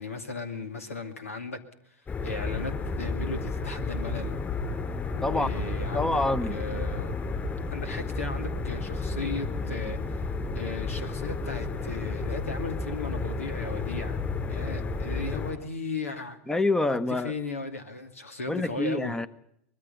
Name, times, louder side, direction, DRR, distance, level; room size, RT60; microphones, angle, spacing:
voice 1, 0.0-1.6 1.9-4.4 5.1-6.2 6.5-7.1 7.7-10.3 10.5-16.4 16.9-19.2, left 3 dB, 90° left, 10 dB, 2.4 m, -36 dB
sound 1, 2.1-15.5, left 3 dB, 25° left, 6.8 m, -32 dB
voice 2, 5.9-6.6 16.5-17.3 18.5-19.3, left 2 dB, 10° left, 16 dB, 0.9 m, -26 dB
24.0 x 20.5 x 5.5 m, 0.74 s
hypercardioid pair, 95°, 7 cm